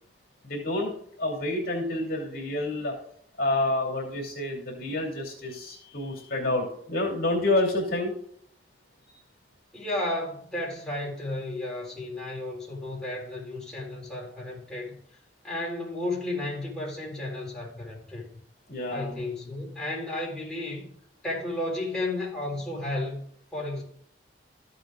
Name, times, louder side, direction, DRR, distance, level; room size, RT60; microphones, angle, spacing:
voice 1, 0.4-0.9 1.2-3.0 3.4-8.1 18.7-19.2, left 2 dB, 55° left, 0 dB, 2.8 m, -28 dB
voice 2, 9.7-15.0 15.4-18.3 18.9-20.9 21.2-23.2 23.5-23.8, left 1 dB, 5° left, -4 dB, 3.7 m, -33 dB
14.0 x 7.7 x 2.4 m, 0.62 s
head